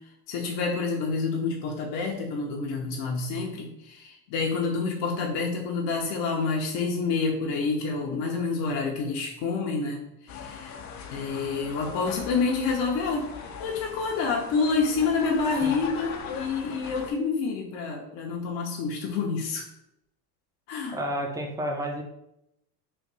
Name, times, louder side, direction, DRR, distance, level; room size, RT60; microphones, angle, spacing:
voice 1, 0.3-10.8 11.1-13.3 13.6-19.7 20.7-21.0, left 4 dB, 60° left, 0 dB, 0.9 m, -28 dB
sound 1, 10.3-17.1, left 6 dB, 35° left, 0.6 m, -40 dB
voice 2, 20.9-22.0, equal, 5° right, 2 dB, 0.6 m, -30 dB
3.3 x 2.5 x 4.0 m, 0.81 s
hypercardioid pair, 95°, 48 cm